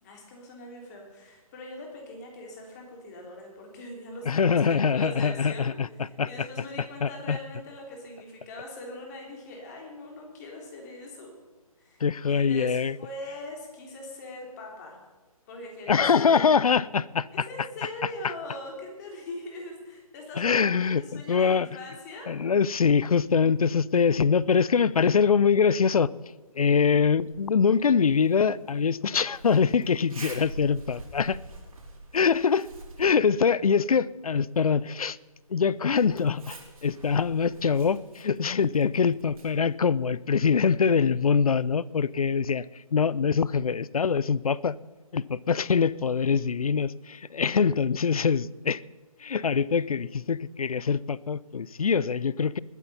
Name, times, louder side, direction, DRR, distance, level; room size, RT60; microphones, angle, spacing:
voice 1, 0.0-5.7 6.3-11.4 11.8-12.0 12.3-15.0 15.5-16.5 17.3-22.3, left 1 dB, 30° left, 1 dB, 3.2 m, -41 dB
voice 2, 4.3-6.5 7.0-7.4 12.0-13.0 15.9-17.5 18.0-18.3 20.4-21.7 22.3-31.4 32.1-32.7 33.0-35.2 35.5-44.8 45.1-48.8 49.2-52.6, left 6 dB, 75° left, 22 dB, 0.5 m, -24 dB
Zipper (clothing), 27.2-40.8, right 2 dB, 75° right, 4.1 m, -48 dB
20.0 x 8.4 x 5.5 m, 1.2 s
figure-of-eight pair, 150°, 19 cm